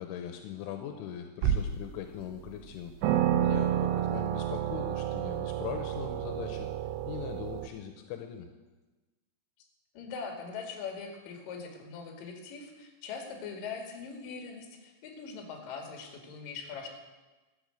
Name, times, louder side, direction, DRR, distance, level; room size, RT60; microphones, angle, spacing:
voice 1, 0.0-6.7 7.1-8.5, left 9 dB, 80° left, 6 dB, 3.2 m, -41 dB
sound 1, 1.4-1.9 2.5-2.6 3.0-7.7, right 10 dB, 80° right, 2.6 m, -30 dB
voice 2, 9.9-16.9, left 5 dB, 50° left, 3 dB, 3.2 m, -41 dB
13.5 x 9.2 x 7.9 m, 1.2 s
omnidirectional pair, 5.8 m